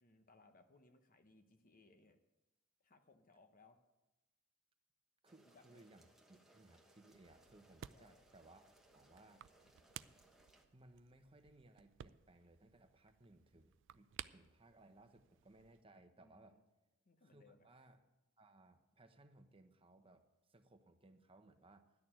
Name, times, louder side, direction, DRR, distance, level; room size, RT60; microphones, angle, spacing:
voice 1, 0.0-2.2 2.8-3.8 5.4-5.8 7.9-8.3 16.2-16.6 17.1-17.7, left 3 dB, 40° left, 7 dB, 0.9 m, -67 dB
voice 2, 5.2-9.5 10.7-16.6 17.2-18.0 18.4-21.9, right 2 dB, 25° right, 7 dB, 0.9 m, -64 dB
sound 1, 5.3-10.6, right 1 dB, ahead, 1.1 m, -69 dB
sound 2, 7.1-15.8, right 10 dB, 60° right, 0.4 m, -57 dB
11.0 x 6.6 x 9.0 m, 1.0 s
head